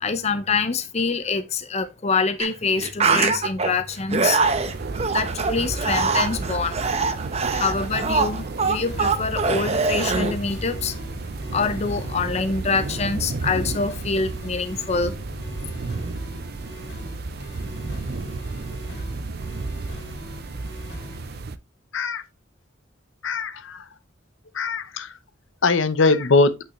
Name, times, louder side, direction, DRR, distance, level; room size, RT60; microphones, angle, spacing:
voice 1, 0.0-4.4 5.1-6.8 7.5-11.0 11.5-15.2 19.0-19.1, left 4 dB, 35° left, 0.6 m, -25 dB
sound 1, 2.4-2.5 2.8-3.7 4.1-10.3, right 4 dB, 35° right, 0.8 m, -23 dB
sound 2, 4.4-21.6, right 3 dB, 55° right, 0.5 m, -32 dB
sound 3, 5.4-21.4, left 2 dB, 55° left, 2.7 m, -44 dB
voice 2, 23.2-23.8 24.5-25.1 25.6-26.5, left 3 dB, 75° left, 0.8 m, -20 dB
8.6 x 5.6 x 3.0 m
head